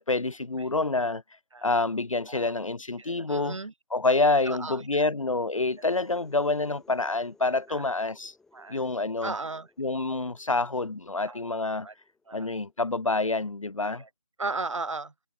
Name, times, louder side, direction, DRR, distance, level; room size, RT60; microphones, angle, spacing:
voice 1, 0.1-1.2 1.6-3.6 3.9-8.3 8.7-9.3 9.8-11.9 12.3-14.0, left 3 dB, 80° left, 3.6 m, -27 dB
voice 2, 3.0-3.7 4.5-5.1 7.7-7.8 8.5-8.8 9.2-9.7 11.2-11.5 11.8-11.9 12.3-12.5 13.8-14.1 14.4-15.1, right 3 dB, 70° right, 2.8 m, -36 dB
sound 1, 5.6-13.1, left 4 dB, ahead, 4.2 m, -62 dB
figure-of-eight pair, 165°, 17 cm